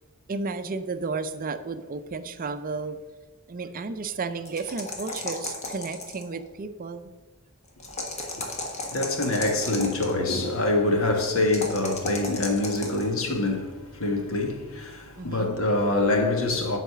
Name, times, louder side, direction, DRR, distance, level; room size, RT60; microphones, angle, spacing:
voice 1, 0.3-3.0 3.5-7.1 15.2-15.6, right 4 dB, 40° right, 0.5 m, -33 dB
sound 1, 4.5-6.4 7.8-10.1 11.5-13.1, left 2 dB, 30° left, 1.4 m, -34 dB
voice 2, 8.2-16.8, left 2 dB, 70° left, 1.5 m, -25 dB
9.3 x 4.1 x 6.8 m
head